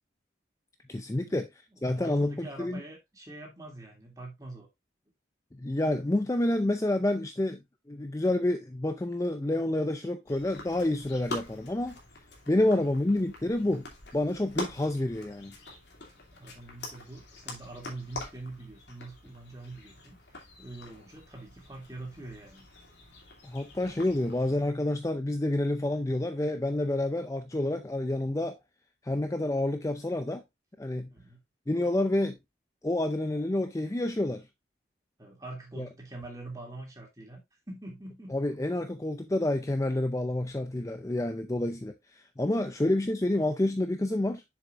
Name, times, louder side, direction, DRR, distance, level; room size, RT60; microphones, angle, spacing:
voice 1, 0.9-2.8 5.6-7.6 7.9-12.0 12.5-13.9 14.1-15.5 23.4-28.6 29.0-30.4 30.8-31.1 31.7-32.4 32.8-34.5 35.8-35.9 38.3-44.4, left 1 dB, 15° left, 0.4 m, -28 dB
voice 2, 1.8-4.7 12.5-12.8 16.4-20.2 20.6-22.7 31.1-31.4 35.2-37.4 37.7-38.3, right 2 dB, 20° right, 2.7 m, -44 dB
sound 1, 10.3-24.7, left 2 dB, 70° left, 2.6 m, -45 dB
7.1 x 7.1 x 2.5 m
head